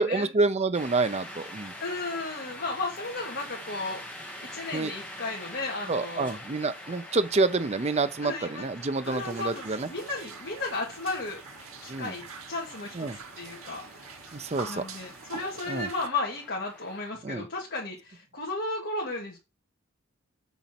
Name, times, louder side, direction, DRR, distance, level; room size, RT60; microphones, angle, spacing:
voice 1, 0.0-1.7 4.7-4.9 5.9-9.9 11.9-12.1 13.0-13.2 14.3-14.8 15.7-15.9 17.2-17.4, right 3 dB, 30° right, 0.6 m, -27 dB
sound 1, 0.7-17.1, left 1 dB, 10° left, 2.1 m, -45 dB
voice 2, 1.8-4.0 4.4-6.4 6.9-7.0 8.2-8.7 9.0-11.4 11.8-12.2 12.5-14.2 14.7-19.4, left 3 dB, 55° left, 2.1 m, -34 dB
sound 2, 9.0-16.1, right 5 dB, 90° right, 1.1 m, -45 dB
7.2 x 4.1 x 5.9 m
head